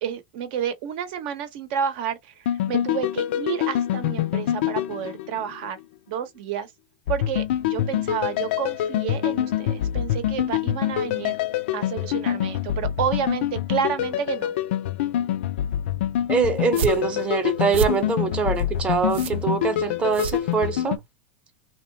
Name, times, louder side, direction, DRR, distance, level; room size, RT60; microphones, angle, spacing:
voice 1, 0.0-5.8 6.1-6.7 7.1-11.4 11.7-14.5, right 8 dB, 60° right, 0.8 m, -30 dB
sound 1, 2.5-5.8 7.1-21.0, left 11 dB, 70° left, 0.3 m, -26 dB
voice 2, 16.3-21.0, right 5 dB, 20° right, 0.7 m, -24 dB
sound 2, 16.6-21.1, right 8 dB, 80° right, 0.3 m, -32 dB
2.8 x 2.1 x 2.6 m
supercardioid pair, 140°, 6 cm